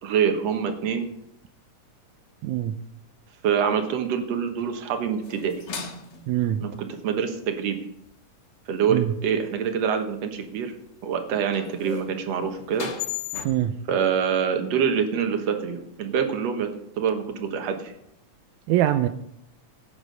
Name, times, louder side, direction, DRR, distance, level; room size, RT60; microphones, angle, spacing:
voice 1, 0.0-1.1 3.4-5.5 6.6-7.8 8.7-10.7 11.0-12.9 13.9-17.9, right 7 dB, 65° right, 6 dB, 2.4 m, -25 dB
voice 2, 2.4-2.8 6.3-6.6 8.9-9.1 13.4-13.8 18.7-19.1, right 13 dB, 85° right, 8 dB, 2.0 m, -23 dB
sound 1, 5.0-6.4 10.1-10.2 11.3-13.5, left 7 dB, 45° left, 1.6 m, -36 dB
16.5 x 7.3 x 5.3 m, 0.76 s
omnidirectional pair, 3.4 m